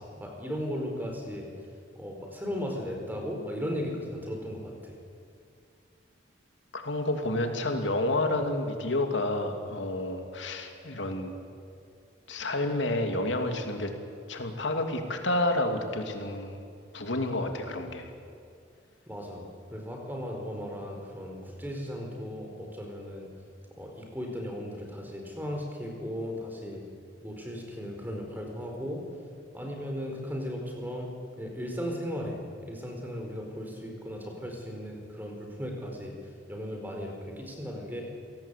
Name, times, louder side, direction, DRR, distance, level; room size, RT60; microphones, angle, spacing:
voice 1, 0.0-1.5 1.9-5.0 16.5-16.6 19.1-19.4 19.7-23.3 23.8-26.8 27.2-29.0 29.5-31.1 31.4-36.1 36.5-38.0, equal, 10° right, 1 dB, 4.6 m, -36 dB
voice 2, 6.7-11.3 12.3-13.9 14.3-16.6 16.9-18.1, left 2 dB, 85° left, 5 dB, 2.7 m, -30 dB
29.0 x 18.0 x 8.4 m, 2.4 s
head